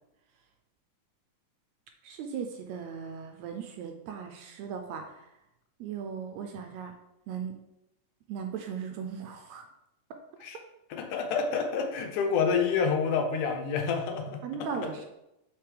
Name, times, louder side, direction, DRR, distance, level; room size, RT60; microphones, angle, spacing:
voice 1, 2.0-5.3 5.8-6.9 7.3-7.6 8.3-9.6 14.4-15.0, right 6 dB, 80° right, 4 dB, 1.7 m, -37 dB
voice 2, 10.9-14.4 14.8-14.9, left 5 dB, 85° left, 4 dB, 2.3 m, -28 dB
6.7 x 4.8 x 3.3 m, 0.89 s
omnidirectional pair, 3.5 m